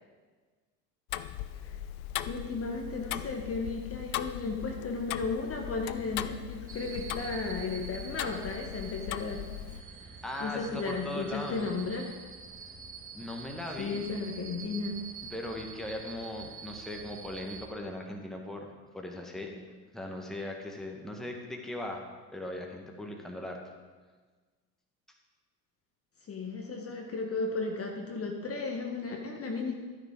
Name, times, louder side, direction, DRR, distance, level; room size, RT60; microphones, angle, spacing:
Tick-tock, 1.1-9.8, left 13 dB, 60° left, 0.6 m, -39 dB
voice 1, 2.3-12.1 13.8-15.0 26.3-29.7, left 3 dB, 30° left, 2 dB, 1.4 m, -35 dB
sound 1, 6.7-17.7, right 6 dB, 25° right, 2.3 m, -46 dB
voice 2, 10.2-11.8 13.1-14.1 15.2-19.7 19.9-22.0 22.3-23.6, left 1 dB, ahead, 1 dB, 1.6 m, -39 dB
12.5 x 9.7 x 3.7 m, 1.4 s
figure-of-eight pair, 65°, 49 cm